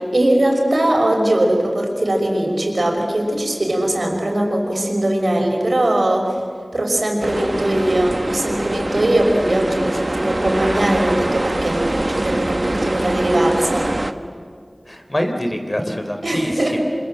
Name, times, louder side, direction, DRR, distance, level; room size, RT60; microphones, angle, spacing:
voice 1, 0.1-6.4 6.7-13.9 16.2-16.8, right 1 dB, 80° right, 1 dB, 5.8 m, -20 dB
sound 1, 7.2-14.1, right 1 dB, 50° right, 1.4 m, -24 dB
voice 2, 14.9-16.8, equal, 30° left, 5 dB, 3.6 m, -25 dB
28.5 x 27.0 x 7.9 m, 2.1 s
wide cardioid pair, 45°, 0 cm